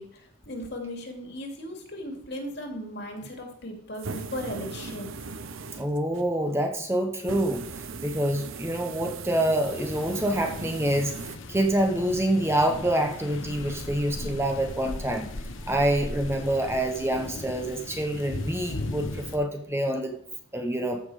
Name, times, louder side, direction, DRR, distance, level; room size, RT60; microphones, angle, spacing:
voice 1, 0.0-5.1, left 1 dB, 55° left, 2 dB, 2.5 m, -37 dB
sound 1, 3.9-6.3 7.2-11.4, right 4 dB, 85° right, 0.8 m, -39 dB
voice 2, 5.8-7.6 8.0-11.1 11.5-15.2 15.7-20.1 20.5-21.0, right 1 dB, 15° right, 4 dB, 1.0 m, -26 dB
sound 2, 9.6-19.4, left 2 dB, 75° left, 1.2 m, -38 dB
14.0 x 6.1 x 4.9 m, 0.64 s
head